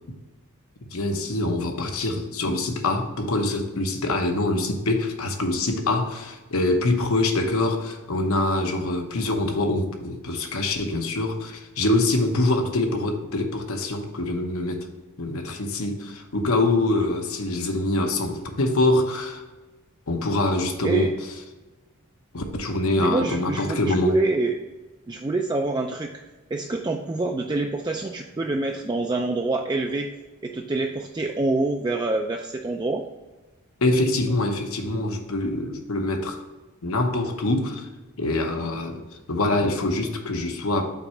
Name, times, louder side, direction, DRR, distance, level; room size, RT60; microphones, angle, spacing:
voice 1, 0.9-14.9 15.2-19.4 20.1-21.1 22.3-24.2 33.8-36.4 36.8-37.9 38.2-40.9, left 2 dB, 70° left, 4 dB, 0.9 m, -24 dB
voice 2, 23.0-24.6 25.1-26.1 26.5-30.1 30.4-33.0, right 2 dB, 20° right, 2 dB, 0.3 m, -26 dB
5.9 x 4.3 x 4.9 m, 1.2 s
head